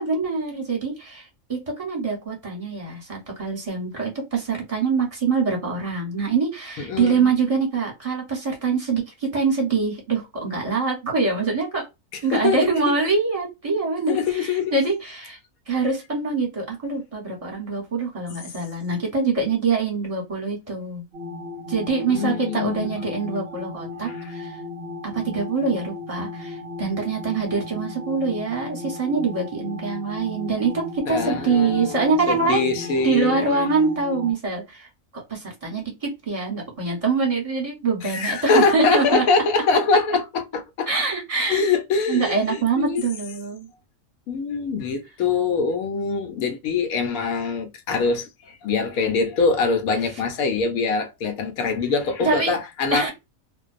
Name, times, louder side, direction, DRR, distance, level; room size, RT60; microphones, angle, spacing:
voice 1, 0.0-11.9 12.2-15.4 15.7-21.0 21.7-24.6 25.1-32.8 33.0-34.9 35.1-39.2 40.9-41.6 42.1-43.7 52.2-52.6 52.9-53.1, right 4 dB, 25° right, 1.0 m, -24 dB
voice 2, 6.8-7.3 12.1-12.7 14.1-14.7 22.1-23.1 24.1-24.3 31.1-33.7 38.0-40.9 41.5-43.1 44.3-53.1, left 4 dB, 80° left, 1.1 m, -24 dB
sound 1, 21.1-34.3, left 3 dB, 60° right, 0.7 m, -35 dB
2.5 x 2.2 x 2.4 m
omnidirectional pair, 1.5 m